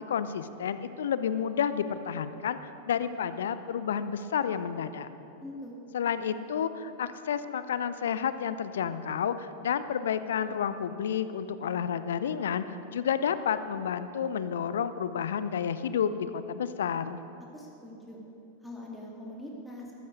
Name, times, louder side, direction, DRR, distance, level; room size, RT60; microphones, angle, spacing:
voice 1, 0.0-2.6 2.8-5.1 5.9-17.2, left 8 dB, 60° left, 13 dB, 0.6 m, -30 dB
voice 2, 5.4-5.8 17.5-18.2 18.6-20.0, left 1 dB, ahead, -4 dB, 2.2 m, -43 dB
14.0 x 13.5 x 5.1 m, 3.0 s
figure-of-eight pair, 90°, 0 cm